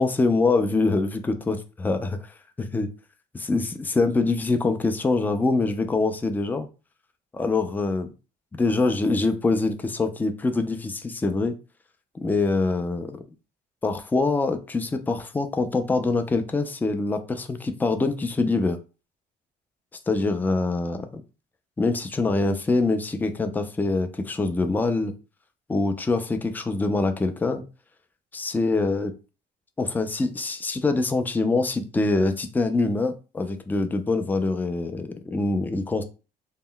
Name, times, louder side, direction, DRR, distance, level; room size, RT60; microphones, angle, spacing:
voice 1, 0.0-2.2 2.6-2.9 3.3-6.7 7.3-8.1 8.5-11.6 12.1-13.2 13.8-18.8 20.1-21.2 21.8-25.1 25.7-27.6 28.3-29.1 29.8-36.0, left 3 dB, 10° left, 0.3 m, -24 dB
2.1 x 2.0 x 3.7 m
cardioid pair, 110°, 17 cm